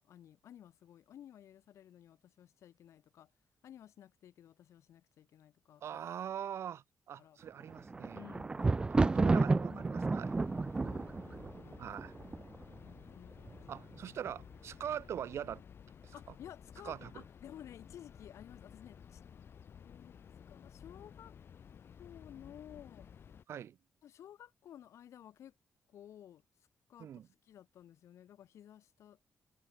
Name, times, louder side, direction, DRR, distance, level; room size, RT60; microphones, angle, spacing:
voice 1, 0.0-3.3 3.6-5.8 7.2-7.4 8.1-10.2 10.8-11.9 12.2-13.9 16.1-19.2 19.8-20.2 20.5-21.3 22.0-23.1 24.0-25.5 25.9-26.4 26.9-27.1 27.4-29.2, left 10 dB, 85° left, 1.3 m, -55 dB
voice 2, 5.8-8.2 8.9-10.4 11.8-12.1 13.7-15.6 16.0-16.1 16.8-17.1 23.5-23.8 27.0-27.3, right 9 dB, 65° right, 0.7 m, -42 dB
Thunder, 7.6-12.7 13.5-14.0 14.2-14.3, right 3 dB, 20° right, 0.3 m, -31 dB
sound 1, 10.1-23.4, left 7 dB, 55° left, 3.5 m, -54 dB
wide cardioid pair, 150°, 5 cm